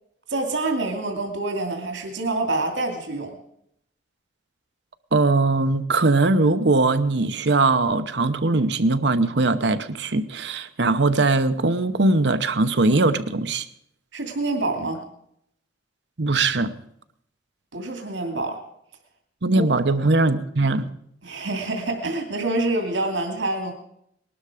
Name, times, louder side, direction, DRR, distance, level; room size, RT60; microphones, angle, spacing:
voice 1, 0.3-3.4 14.1-15.0 17.7-18.6 19.5-19.7 20.0-20.1 21.2-23.7, right 2 dB, 85° right, 3 dB, 2.6 m, -26 dB
voice 2, 5.1-13.7 16.2-16.8 19.4-20.9, right 3 dB, 65° right, 11 dB, 0.9 m, -20 dB
20.0 x 12.5 x 5.0 m, 0.74 s
head